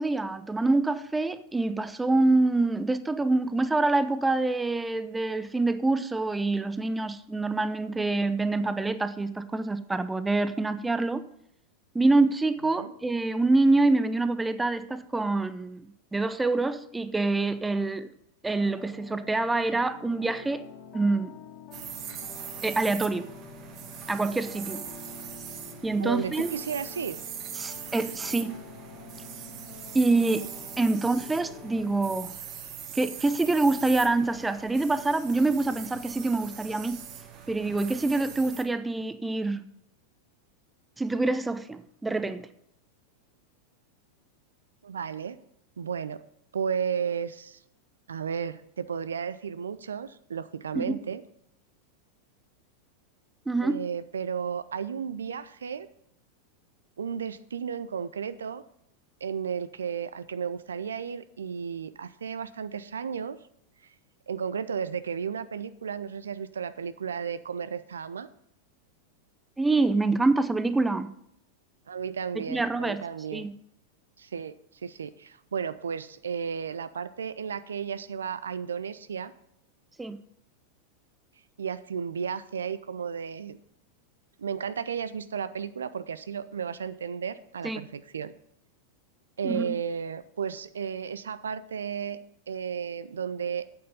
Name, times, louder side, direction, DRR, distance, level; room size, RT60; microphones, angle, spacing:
voice 1, 0.0-11.2 11.9-18.1 18.4-20.6 20.9-21.3 22.6-23.3 24.1-24.8 25.8-26.5 27.6-28.6 29.9-30.5 30.8-32.3 32.9-37.0 37.5-39.6 41.0-42.5 50.7-51.0 53.5-53.8 69.6-71.1 72.4-73.0 73.3-73.5 80.0-80.2 87.6-87.8 89.4-89.8, right 2 dB, 10° right, 13 dB, 0.6 m, -26 dB
sound 1, 18.5-32.0, left 4 dB, 25° left, 1.9 m, -47 dB
sound 2, 21.7-38.6, right 8 dB, 35° right, 1.4 m, -41 dB
voice 2, 26.0-27.2 44.8-45.4 45.8-46.2 46.5-47.6 48.1-51.2 53.6-55.9 57.0-58.6 59.2-63.4 63.8-63.9 64.3-68.3 71.9-73.5 74.2-79.3 81.6-83.6 84.4-88.3 89.4-93.7, right 7 dB, 70° right, 14 dB, 0.5 m, -33 dB
8.8 x 8.6 x 5.4 m, 0.74 s
figure-of-eight pair, 90°, 0 cm